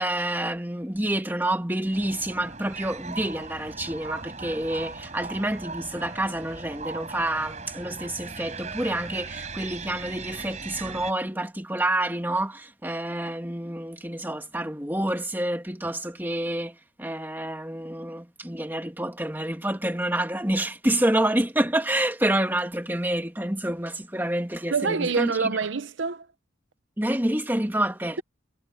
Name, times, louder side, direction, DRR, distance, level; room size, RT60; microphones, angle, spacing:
voice 1, 0.0-25.6 27.0-28.2, right 1 dB, 10° right, 1.9 m, -28 dB
sound 1, 1.9-11.1, right 4 dB, 35° right, 6.0 m, -39 dB
voice 2, 24.7-26.3, right 4 dB, 70° right, 0.8 m, -26 dB
head